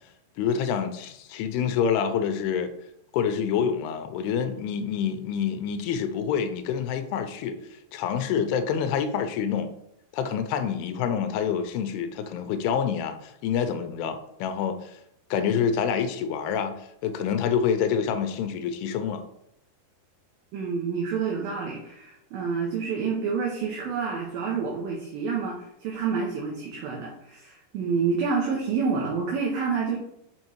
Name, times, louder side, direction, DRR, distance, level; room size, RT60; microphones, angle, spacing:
voice 1, 0.4-2.7 3.1-7.6 7.9-9.7 10.1-15.0 15.3-16.8 17.0-19.2, left 7 dB, 80° left, 8 dB, 2.5 m, -27 dB
voice 2, 20.5-30.0, right 5 dB, 75° right, -2 dB, 2.4 m, -28 dB
6.4 x 5.5 x 3.1 m, 0.80 s
omnidirectional pair, 4.9 m